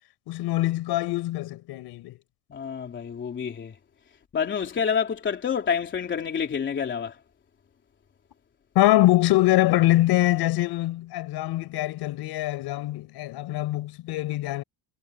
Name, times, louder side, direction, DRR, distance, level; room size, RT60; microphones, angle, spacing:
voice 1, 0.3-2.2 8.8-14.6, left 16 dB, 70° left, 5.2 m, -23 dB
voice 2, 2.5-3.7 4.3-7.1, left 7 dB, 30° left, 3.3 m, -28 dB
cardioid pair, 180°, 41 cm